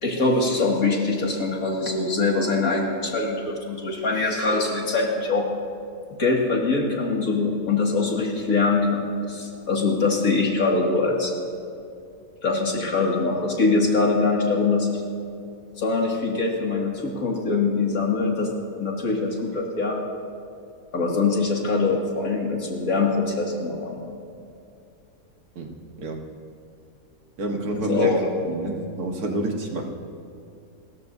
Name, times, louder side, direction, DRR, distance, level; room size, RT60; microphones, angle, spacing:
voice 1, 0.0-5.5 6.2-11.3 12.4-15.0 15.8-20.0 20.9-24.0 27.8-28.2, left 3 dB, 70° left, -1 dB, 2.6 m, -23 dB
voice 2, 25.6-26.2 27.4-28.2 28.4-29.9, right 2 dB, 90° right, 2 dB, 1.9 m, -29 dB
29.5 x 14.0 x 2.7 m, 2.5 s
omnidirectional pair, 1.5 m